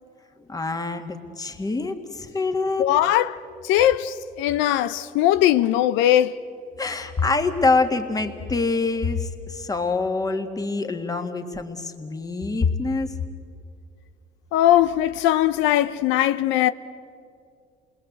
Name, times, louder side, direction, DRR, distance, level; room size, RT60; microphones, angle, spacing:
voice 1, 0.5-2.8 6.8-13.1, left 3 dB, 20° left, 1.8 m, -25 dB
voice 2, 2.8-6.4 14.5-16.7, left 12 dB, 90° left, 0.6 m, -20 dB
28.5 x 20.5 x 8.0 m
cardioid pair, 115°, 19 cm